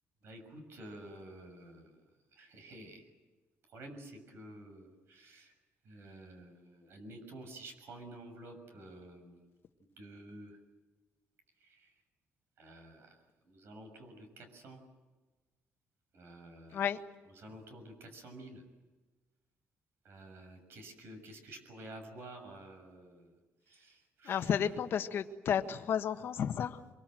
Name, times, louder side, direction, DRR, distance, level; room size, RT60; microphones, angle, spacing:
voice 1, 0.2-2.0 2.3-3.1 3.7-5.5 5.8-9.4 10.0-10.6 11.6-11.9 12.6-13.2 13.5-14.8 16.1-16.9 17.2-18.6 20.0-23.3 23.7-24.8, right 1 dB, 55° right, 6 dB, 6.7 m, -51 dB
voice 2, 24.3-26.8, left 8 dB, 55° left, 7 dB, 1.6 m, -32 dB
25.5 x 23.0 x 7.9 m, 1.2 s
cardioid pair, 155°, 5 cm